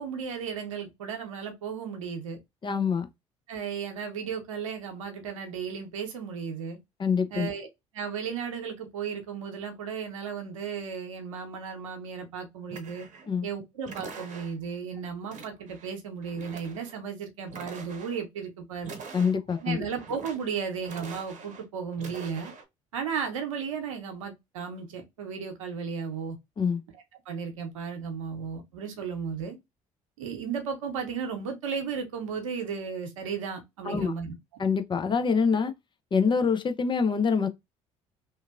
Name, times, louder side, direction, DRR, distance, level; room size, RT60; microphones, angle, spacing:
voice 1, 0.0-2.4 3.5-6.8 7.3-7.7 7.9-13.1 13.4-18.9 19.6-22.5 22.9-26.4 27.3-29.6 30.2-34.3, right 6 dB, 80° right, 0.7 m, -35 dB
voice 2, 2.6-3.1 7.0-7.5 13.3-13.5 19.1-19.8 26.6-26.8 33.9-34.1 34.6-35.7 36.1-37.5, left 5 dB, 30° left, 0.5 m, -25 dB
sound 1, 12.7-13.3 13.8-14.7 15.3-15.9 16.2-17.0 17.5-18.2 18.8-19.6 20.0-20.6 20.8-21.6 21.9-22.6, right 4 dB, 50° right, 0.9 m, -44 dB
2.8 x 2.5 x 2.4 m
hypercardioid pair, 55°, 16 cm